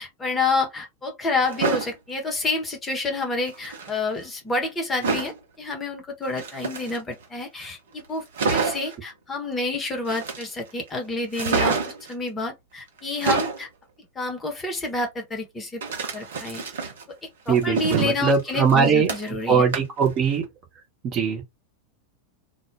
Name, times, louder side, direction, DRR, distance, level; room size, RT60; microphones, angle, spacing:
voice 1, 0.0-11.8 12.1-13.7 14.1-15.8 16.1-16.6 17.5-19.6, left 3 dB, 15° left, 0.8 m, -28 dB
sound 1, 1.4-1.9 3.5-3.9 5.0-5.4 6.3-7.2 7.6-7.7 8.0-8.1 8.3-8.9 10.0-10.7 11.3-12.1 13.0-13.6 15.8-17.0 17.5-19.4 19.7-20.1 20.4-20.5, right 4 dB, 60° right, 0.7 m, -27 dB
voice 2, 17.5-19.1 19.5-20.4 21.0-21.4, right 6 dB, 35° right, 0.9 m, -21 dB
2.2 x 2.2 x 3.2 m
figure-of-eight pair, 90°, 0 cm